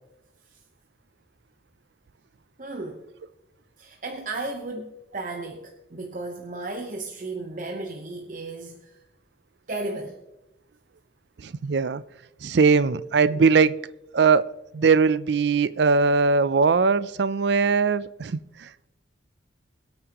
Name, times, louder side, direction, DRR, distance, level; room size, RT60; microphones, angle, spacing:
voice 1, 2.6-3.1 3.8-9.0 9.7-10.2, right 2 dB, 45° right, 0.9 m, -34 dB
voice 2, 11.4-12.0 12.4-13.8 14.1-18.9, right 5 dB, 65° right, 0.4 m, -21 dB
23.0 x 8.6 x 3.0 m
head